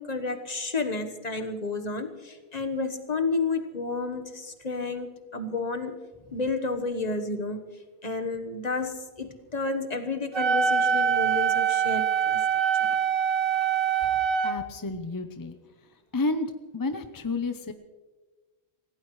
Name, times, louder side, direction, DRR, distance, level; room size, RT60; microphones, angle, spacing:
voice 1, 0.0-6.0 6.3-7.6 8.0-12.4 12.8-13.0, left 3 dB, 40° left, 7 dB, 1.3 m, -31 dB
Wind instrument woodwind instrument, 10.3-14.6, right 7 dB, 55° right, 1.3 m, -24 dB
voice 2, 14.4-15.6 16.1-16.5 16.7-17.7, left 3 dB, 25° left, 8 dB, 0.6 m, -30 dB
27.0 x 16.5 x 3.2 m, 1.3 s
omnidirectional pair, 1.1 m